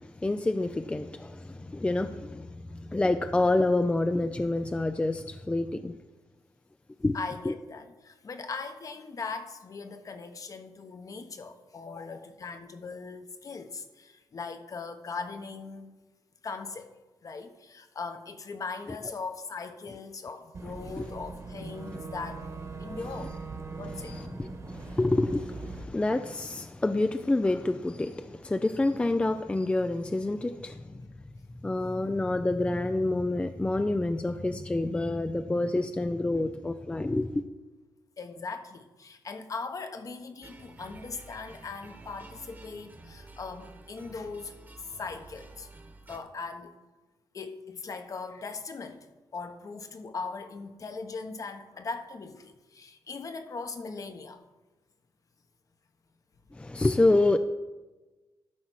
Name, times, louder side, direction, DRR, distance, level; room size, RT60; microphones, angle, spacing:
voice 1, 0.0-5.9 7.0-7.1 7.4-7.5 21.0-21.1 22.9-23.0 24.0-31.1 31.6-37.4 56.5-57.4, left 2 dB, 15° left, 0.4 m, -28 dB
voice 2, 7.1-16.0 16.4-16.9 17.2-22.5 22.8-23.4 23.8-24.2 38.2-44.6 45.0-45.7 46.1-46.7 47.3-49.1 49.3-54.4, left 4 dB, 45° left, 1.1 m, -39 dB
Boat Water vehicle / Engine, 20.5-25.8, right 3 dB, 40° right, 1.5 m, -41 dB
sound 1, 40.4-46.2, right 2 dB, 25° right, 1.3 m, -50 dB
12.5 x 4.3 x 6.3 m
cardioid pair, 75°, 8 cm